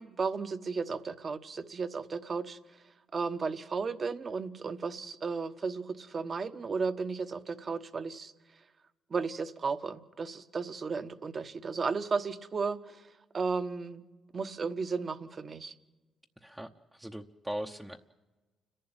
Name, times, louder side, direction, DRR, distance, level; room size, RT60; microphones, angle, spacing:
voice 1, 0.0-2.6 3.1-8.3 9.1-13.1 13.3-14.0 14.3-15.7, right 4 dB, 40° right, 10 dB, 1.2 m, -34 dB
voice 2, 16.4-18.0, right 1 dB, 10° right, 0 dB, 0.9 m, -40 dB
29.5 x 11.5 x 8.9 m, 1.2 s
cardioid pair, 90°, 0 cm